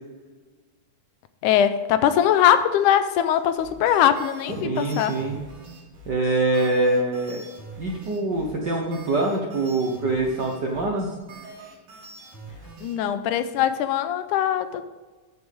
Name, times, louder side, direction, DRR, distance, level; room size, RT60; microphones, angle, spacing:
voice 1, 1.4-5.2 12.8-14.8, left 10 dB, 85° left, 2.1 m, -21 dB
sound 1, 3.6-12.9, right 3 dB, 85° right, 4.8 m, -44 dB
voice 2, 4.6-5.4 6.1-7.4 7.8-11.1, right 2 dB, 65° right, 1.0 m, -24 dB
13.0 x 7.2 x 3.6 m
omnidirectional pair, 3.6 m